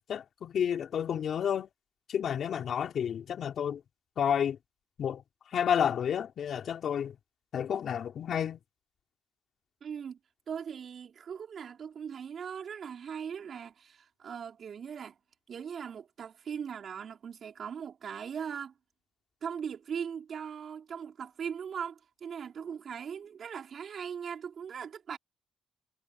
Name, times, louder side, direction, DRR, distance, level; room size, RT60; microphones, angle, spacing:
voice 1, 0.0-1.7 2.1-3.8 4.2-4.6 5.0-5.2 5.5-7.1 7.5-8.6, left 8 dB, 60° left, 4.2 m, -30 dB
voice 2, 9.8-10.2 10.5-15.2 15.5-18.7 19.4-25.2, right 7 dB, 55° right, 4.9 m, -39 dB
cardioid pair, 90°, 0 cm